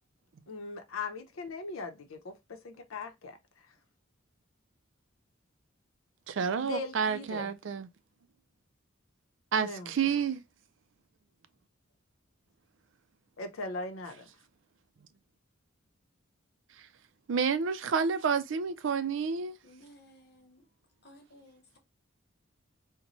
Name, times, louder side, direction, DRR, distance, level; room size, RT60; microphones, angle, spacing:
voice 1, 0.5-3.4 6.6-7.5 9.6-10.2 13.4-14.3, left 3 dB, 90° left, 0.7 m, -40 dB
voice 2, 6.3-7.9 9.5-10.4 17.3-19.6, right 6 dB, 65° right, 0.4 m, -29 dB
voice 3, 19.6-20.7 21.0-21.8, equal, 50° left, 1.0 m, -57 dB
4.0 x 2.2 x 2.9 m
head